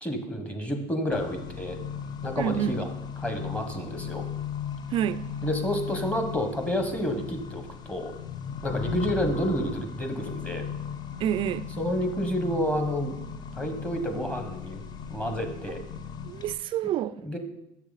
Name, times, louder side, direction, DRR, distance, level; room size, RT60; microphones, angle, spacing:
voice 1, 0.0-1.8 2.2-2.9 3.2-4.3 5.4-8.1 8.6-10.6 11.8-13.1 13.5-15.8 17.2-17.4, equal, 10° left, 1.2 m, -30 dB
Accelerating revving vroom, 1.1-16.5, left 7 dB, 35° left, 0.5 m, -37 dB
voice 2, 2.4-2.8 4.9-5.3 11.2-11.7 16.2-17.2, right 10 dB, 45° right, 0.4 m, -28 dB
7.0 x 6.7 x 4.0 m
supercardioid pair, 120°, 12 cm